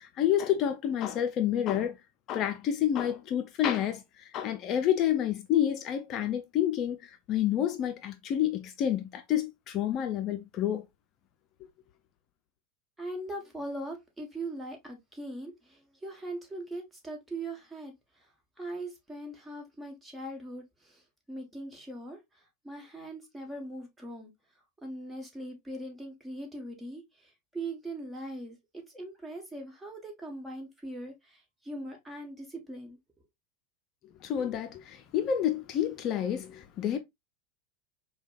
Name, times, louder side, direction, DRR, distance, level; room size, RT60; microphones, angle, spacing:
voice 1, 0.0-2.0 2.3-4.0 4.3-10.8 34.2-37.0, left 10 dB, 45° left, 0.5 m, -29 dB
voice 2, 13.0-17.9 18.6-21.0 21.3-24.3 24.8-33.0, right 1 dB, 10° right, 1.4 m, -41 dB
4.9 x 2.3 x 2.5 m
hypercardioid pair, 110°, 0 cm